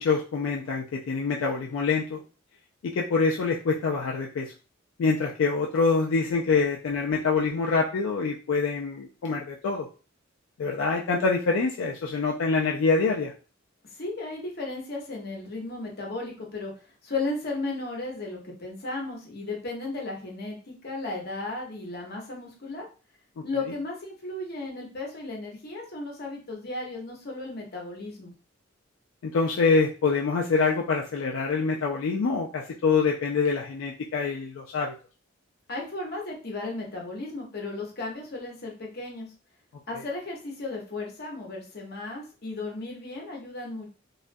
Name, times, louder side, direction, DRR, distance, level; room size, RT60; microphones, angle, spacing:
voice 1, 0.0-2.2 2.8-4.5 5.0-9.9 10.6-13.3 29.2-34.9 39.9-40.0, left 4 dB, 80° left, -1 dB, 0.3 m, -25 dB
voice 2, 14.0-16.7 17.0-22.9 23.4-28.3 35.7-39.3 39.9-43.9, left 2 dB, 50° left, -1 dB, 0.7 m, -35 dB
2.3 x 2.1 x 2.5 m, 0.36 s
head